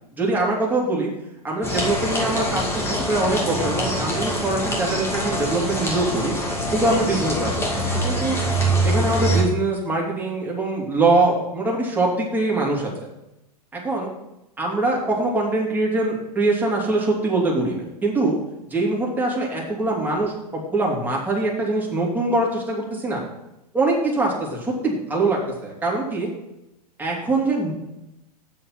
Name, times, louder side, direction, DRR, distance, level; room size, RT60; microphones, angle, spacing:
voice 1, 0.1-1.1 1.4-6.3 6.7-8.4 8.8-12.9 13.7-14.1 14.6-18.3 18.7-23.2 23.7-26.3 27.0-27.7, right 2 dB, 10° right, -3 dB, 2.8 m, -23 dB
sound 1, 1.6-9.4, right 1 dB, 10° left, 2.3 m, -24 dB
7.6 x 7.4 x 5.9 m, 0.91 s
hypercardioid pair, 110°, 20 cm